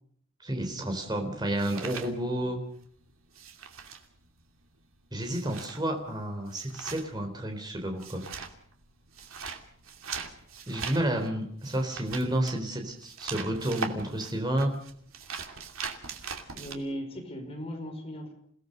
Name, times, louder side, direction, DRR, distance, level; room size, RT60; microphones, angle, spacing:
voice 1, 0.4-2.6 5.1-8.2 10.7-14.7, right 1 dB, 20° right, 3 dB, 3.7 m, -30 dB
sound 1, 0.7-2.8 3.1-16.8, right 5 dB, 80° right, 2.7 m, -41 dB
voice 2, 16.5-18.3, equal, 30° left, 2 dB, 5.3 m, -37 dB
28.5 x 18.0 x 6.7 m, 0.62 s
head